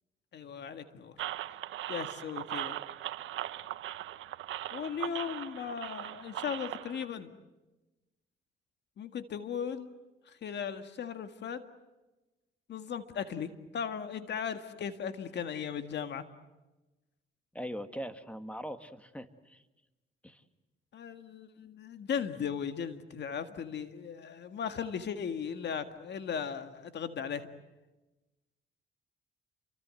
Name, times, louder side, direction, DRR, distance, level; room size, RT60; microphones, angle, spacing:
voice 1, 0.3-1.2 1.9-2.8 4.7-7.3 9.0-9.9 10.3-11.6 12.7-16.2 20.9-27.5, left 7 dB, 60° left, 8 dB, 1.9 m, -37 dB
sound 1, 1.2-7.1, right 13 dB, 80° right, 1.0 m, -39 dB
voice 2, 17.5-19.6 20.2-20.4, equal, 5° left, 9 dB, 1.9 m, -41 dB
29.5 x 24.0 x 7.8 m, 1.1 s
cardioid pair, 90°, 20 cm